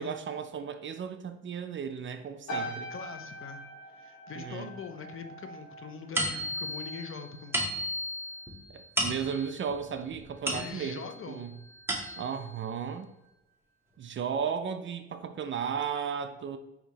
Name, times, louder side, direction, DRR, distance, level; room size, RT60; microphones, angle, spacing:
voice 1, 0.0-2.9 4.3-4.7 8.7-11.5 12.2-13.1 14.0-16.6, right 7 dB, 40° right, 0.4 m, -35 dB
sound 1, 2.5-7.1 7.4-7.8, right 1 dB, 70° left, 1.0 m, -42 dB
voice 2, 2.5-3.6 4.0-7.6 10.5-11.4, left 5 dB, 45° left, 0.5 m, -43 dB
sound 2, 6.2-11.1 11.6-12.5, equal, 10° right, 0.9 m, -34 dB
4.3 x 2.8 x 4.0 m
cardioid pair, 90°, 30 cm